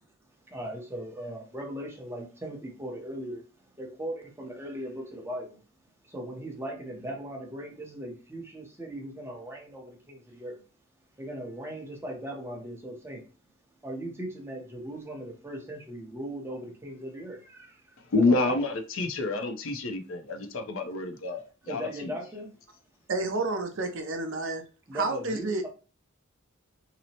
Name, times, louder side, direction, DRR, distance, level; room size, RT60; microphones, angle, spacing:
voice 1, 0.5-5.6 6.0-10.6 11.2-13.2 13.8-17.9 18.3-18.6 21.7-22.5 24.9-25.7, right 1 dB, 10° right, 0.6 m, -38 dB
voice 2, 18.1-22.2, left 3 dB, 65° left, 0.5 m, -28 dB
voice 3, 23.1-24.6 24.9-25.7, right 3 dB, 60° right, 0.5 m, -30 dB
2.8 x 2.0 x 2.7 m
head